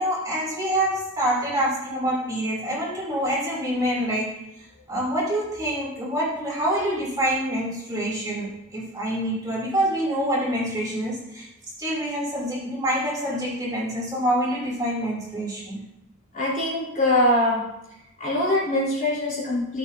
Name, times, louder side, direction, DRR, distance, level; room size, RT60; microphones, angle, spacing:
voice 1, 0.0-4.3 4.9-11.5 11.8-15.8, right 1 dB, 20° right, -5 dB, 3.0 m, -26 dB
voice 2, 16.3-17.6 18.2-19.8, left 1 dB, 40° left, -6 dB, 3.6 m, -23 dB
14.5 x 7.3 x 2.7 m, 0.87 s
head